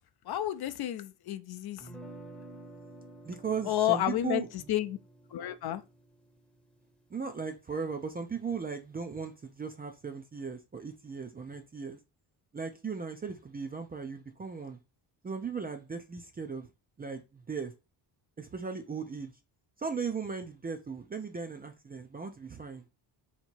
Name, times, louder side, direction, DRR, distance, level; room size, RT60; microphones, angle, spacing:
voice 1, 0.2-1.9 3.7-5.0 5.3-5.8, left 12 dB, 60° left, 0.5 m, -31 dB
sound 1, 1.8-7.8, right 2 dB, ahead, 0.7 m, -51 dB
voice 2, 3.2-4.5 7.1-12.0 12.5-14.8 15.2-16.7 17.0-17.7 18.4-19.3 19.8-22.9, right 5 dB, 25° right, 0.3 m, -37 dB
3.8 x 2.9 x 4.3 m
wide cardioid pair, 160°, 44 cm